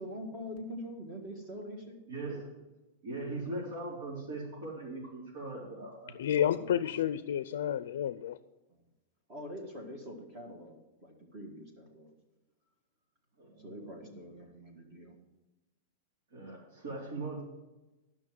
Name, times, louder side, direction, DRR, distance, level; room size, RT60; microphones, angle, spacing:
voice 1, 0.0-2.0 8.7-8.8 9.3-12.2 13.6-15.1, equal, 25° right, 2 dB, 1.6 m, -44 dB
voice 2, 2.1-2.6 3.0-6.8 13.4-13.7 14.0-14.1 16.3-17.4, right 2 dB, 75° right, -8 dB, 3.9 m, -40 dB
voice 3, 6.2-8.4, left 10 dB, 75° left, 14 dB, 0.4 m, -30 dB
11.0 x 6.1 x 7.7 m, 1.0 s
supercardioid pair, 175°, 0 cm